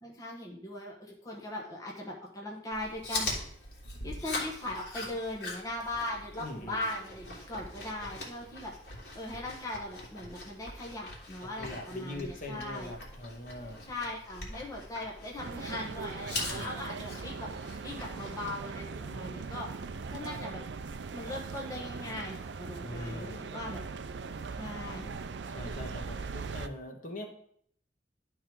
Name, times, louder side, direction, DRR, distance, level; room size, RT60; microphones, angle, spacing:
voice 1, 0.0-3.3 4.0-8.7 9.1-12.9 13.9-17.5 17.8-19.7 20.1-20.6 21.1-23.8 24.5-25.2, left 1 dB, 20° left, -3 dB, 1.1 m, -39 dB
Chewing mastication, 2.7-18.6, left 2 dB, 65° left, 2.4 m, -42 dB
voice 2, 6.4-6.9 11.6-13.9 16.5-17.0 22.8-23.5 25.5-27.3, left 1 dB, 50° left, 1 dB, 1.5 m, -42 dB
sound 1, 15.4-26.7, right 4 dB, 90° right, 0.5 m, -40 dB
11.5 x 3.8 x 4.6 m, 0.66 s
head